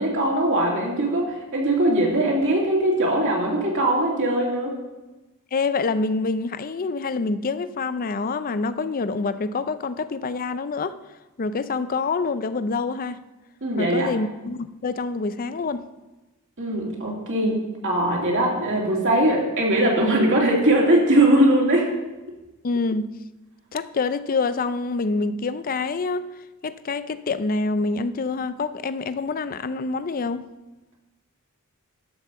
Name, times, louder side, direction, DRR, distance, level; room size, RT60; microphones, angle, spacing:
voice 1, 0.0-4.7 13.6-14.1 16.6-21.9, right 1 dB, 60° right, 2.8 m, -21 dB
voice 2, 5.5-11.0 11.4-13.2 13.8-15.9 22.6-23.1 23.7-26.3 26.6-30.4, left 4 dB, 40° left, 0.5 m, -26 dB
12.0 x 5.5 x 6.9 m
head